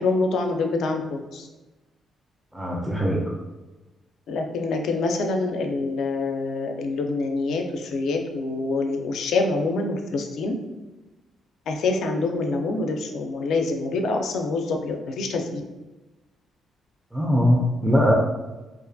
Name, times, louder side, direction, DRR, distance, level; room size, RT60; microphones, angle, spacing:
voice 1, 0.0-1.5 4.3-10.6 11.7-15.6, left 3 dB, 70° left, 4 dB, 0.3 m, -26 dB
voice 2, 2.5-3.3 17.1-18.1, equal, 10° right, -2 dB, 0.4 m, -21 dB
2.4 x 2.2 x 2.5 m, 1.1 s
cardioid pair, 90°, 0 cm